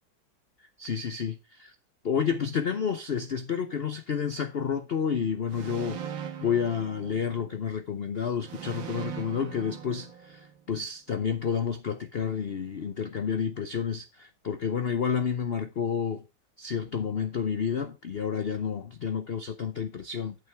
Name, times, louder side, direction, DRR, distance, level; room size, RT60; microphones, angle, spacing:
voice 1, 0.8-1.7 2.0-16.2 16.6-20.3, left 7 dB, 75° left, 0.5 m, -30 dB
sound 1, 5.5-7.7 8.4-10.6, right 9 dB, 85° right, 2.0 m, -40 dB
8.8 x 6.8 x 4.6 m
omnidirectional pair, 2.1 m